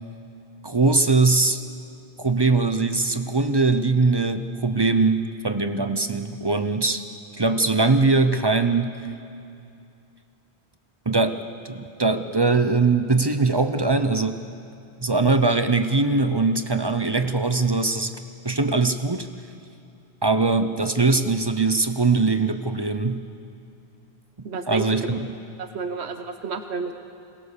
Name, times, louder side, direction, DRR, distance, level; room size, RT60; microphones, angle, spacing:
voice 1, 0.6-1.6 2.2-7.0 7.4-9.0 11.1-14.4 15.0-18.2 18.4-19.3 20.2-23.3 24.7-25.3, right 3 dB, 25° right, 9 dB, 0.7 m, -21 dB
voice 2, 24.4-25.2 25.6-26.9, right 4 dB, 85° right, 8 dB, 1.2 m, -31 dB
23.0 x 19.0 x 6.7 m, 2.6 s
omnidirectional pair, 1.1 m